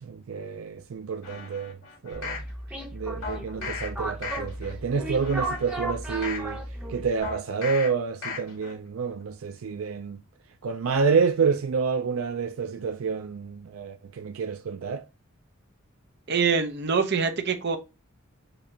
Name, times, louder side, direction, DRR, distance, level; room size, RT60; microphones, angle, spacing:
voice 1, 0.0-1.8 2.0-2.4 2.9-6.6 6.9-10.2 10.6-15.1, right 5 dB, 80° right, 0.4 m, -28 dB
sound 1, 1.2-2.5 3.2-3.9 4.2-4.7 5.2-6.5 7.2-7.9 8.2-8.7 9.1-9.2, left 5 dB, 85° left, 1.9 m, -36 dB
sound 2, 2.1-7.2, right 1 dB, 5° right, 1.4 m, -35 dB
voice 2, 16.3-17.8, right 5 dB, 55° right, 0.8 m, -24 dB
6.9 x 2.7 x 2.7 m
head